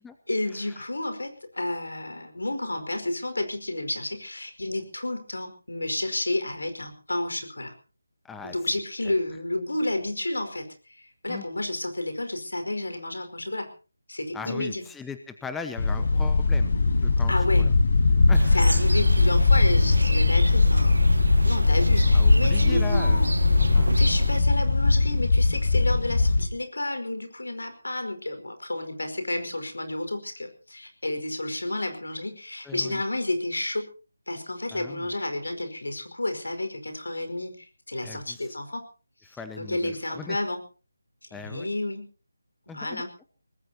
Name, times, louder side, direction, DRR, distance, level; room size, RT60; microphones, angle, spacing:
voice 1, 0.3-7.7 8.4-10.7 11.2-13.7 14.1-14.8 17.3-17.7 18.5-21.1 21.4-23.3 23.7-33.9 34.3-37.5 37.9-38.8 39.6-40.6 41.3-42.0 42.7-43.1, left 1 dB, 80° left, 7 dB, 5.0 m, -31 dB
voice 2, 8.2-8.6 11.3-11.4 14.3-16.7 17.0-17.7 18.3-18.9 22.1-23.2 23.7-23.9 32.6-33.0 34.7-35.1 38.0-38.5 39.2-40.4 41.3-41.7 42.7-43.1, left 5 dB, 5° left, 9 dB, 1.0 m, -39 dB
sound 1, 15.8-26.5, left 3 dB, 55° left, 2.5 m, -20 dB
sound 2, 18.3-24.4, right 2 dB, 80° right, 1.9 m, -31 dB
23.5 x 19.5 x 2.9 m, 0.36 s
figure-of-eight pair, 160°, 0 cm